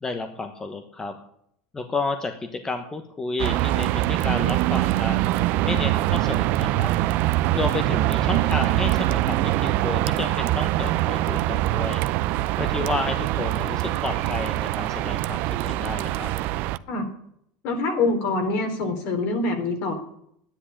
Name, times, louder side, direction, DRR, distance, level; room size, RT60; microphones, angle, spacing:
voice 1, 0.0-1.1 1.7-5.3 5.6-6.9 7.5-12.0 12.6-16.3, left 3 dB, 15° left, 6 dB, 1.1 m, -31 dB
sound 1, 3.4-16.8, right 16 dB, 55° right, 0.5 m, -23 dB
voice 2, 17.6-19.9, left 3 dB, 60° left, 5 dB, 3.7 m, -25 dB
11.0 x 10.0 x 8.6 m, 0.70 s
supercardioid pair, 140°, 4 cm